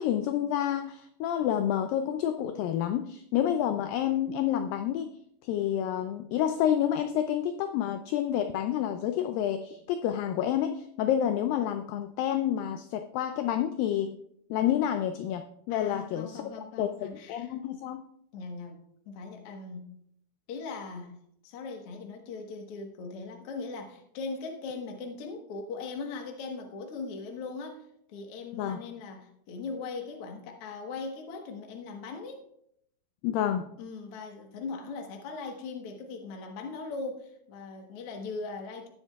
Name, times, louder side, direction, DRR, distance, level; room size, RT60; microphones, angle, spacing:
voice 1, 0.0-5.1 5.4-14.2 14.5-18.0 28.6-28.8 33.2-33.7, left 10 dB, 90° left, 8 dB, 2.0 m, -29 dB
voice 2, 15.7-17.5 18.3-18.8 19.0-19.9 20.5-21.2 21.4-32.4 33.8-38.9, left 4 dB, 70° left, 2 dB, 1.4 m, -39 dB
18.5 x 7.2 x 2.3 m, 0.72 s
omnidirectional pair, 4.5 m